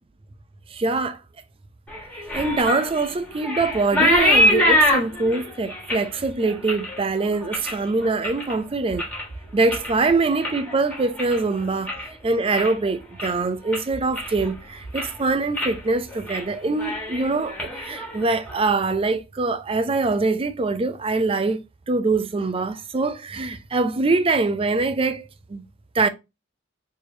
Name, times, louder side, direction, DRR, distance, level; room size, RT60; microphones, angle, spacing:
voice 1, 0.7-1.2 2.1-9.1 9.5-25.6 25.9-26.1, right 3 dB, 30° right, 0.4 m, -23 dB
sound 1, 1.9-8.5 8.9-9.4 9.6-12.1 12.4-12.9 13.2-13.3 13.7-14.5 14.8-15.2 15.5-15.8 16.1-16.4 16.7-18.6, left 1 dB, 5° left, 1.6 m, -24 dB
4.7 x 3.0 x 2.7 m
head